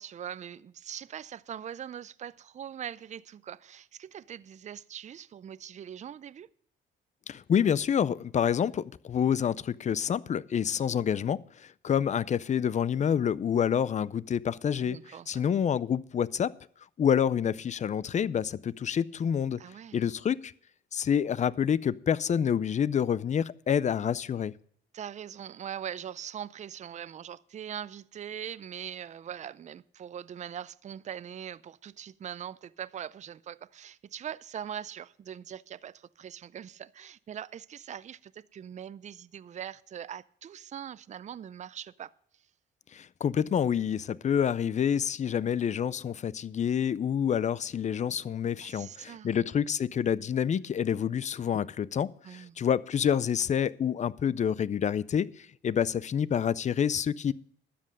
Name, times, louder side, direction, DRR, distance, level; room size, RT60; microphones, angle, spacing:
voice 1, 0.0-6.5 14.8-15.4 19.6-20.0 24.9-42.1 48.6-49.4 52.2-52.6, right 9 dB, 35° right, 0.4 m, -42 dB
voice 2, 7.3-15.0 15.3-16.5 17.0-19.6 19.9-20.5 20.9-24.5 42.9-57.3, left 8 dB, 35° left, 0.5 m, -28 dB
12.5 x 7.6 x 6.4 m
cardioid pair, 90°, 20 cm